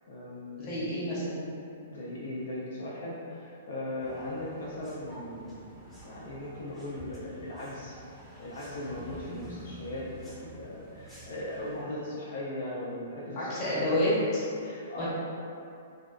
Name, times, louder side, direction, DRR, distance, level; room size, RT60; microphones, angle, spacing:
voice 1, 0.1-1.0 1.8-8.0 8.4-13.9 14.6-15.1, left 1 dB, 75° left, -7 dB, 0.4 m, -38 dB
voice 2, 0.6-1.5 13.4-14.4 15.0-15.1, left 1 dB, 35° left, -9 dB, 0.9 m, -29 dB
sound 1, 4.0-11.8, equal, 10° left, 0.6 m, -48 dB
2.5 x 2.2 x 2.3 m, 2.5 s
hypercardioid pair, 135°, 0 cm